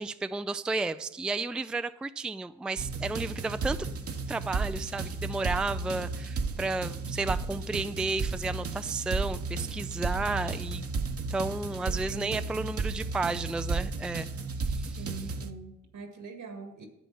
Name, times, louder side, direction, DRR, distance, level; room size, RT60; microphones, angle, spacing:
voice 1, 0.0-3.9 4.3-10.9 11.3-14.3 14.6-15.0, right 3 dB, 5° right, 11 dB, 0.4 m, -32 dB
sound 1, 2.8-15.5, right 4 dB, 50° right, 1.0 m, -33 dB
voice 2, 11.8-12.3 12.6-12.7 15.0-16.9, right 4 dB, 75° right, 5 dB, 1.9 m, -43 dB
9.5 x 8.1 x 5.5 m, 0.90 s
supercardioid pair, 50°, 31 cm